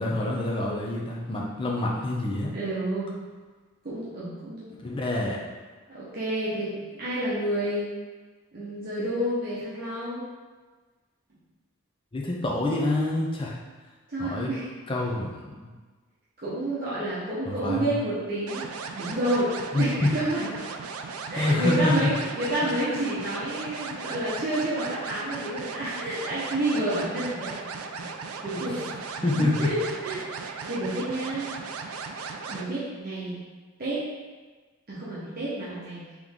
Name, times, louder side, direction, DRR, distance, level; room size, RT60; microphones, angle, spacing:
voice 1, 0.0-2.5 4.8-5.4 12.1-13.5 14.2-14.5 14.9-15.6 17.5-17.9 19.7-19.9 21.4-22.1 29.2-29.7, left 2 dB, 25° left, -2 dB, 0.5 m, -26 dB
voice 2, 2.5-3.1 3.8-4.7 5.9-7.9 8.5-10.3 14.1-14.7 16.4-18.7 18.9-20.6 21.3-27.6 28.4-28.8 29.4-31.5 32.5-33.4 33.8-34.0 34.9-36.0, right 1 dB, 45° right, -10 dB, 0.8 m, -29 dB
sound 1, 18.5-32.7, right 5 dB, 85° right, 0.4 m, -37 dB
3.8 x 3.0 x 3.6 m, 1.4 s
head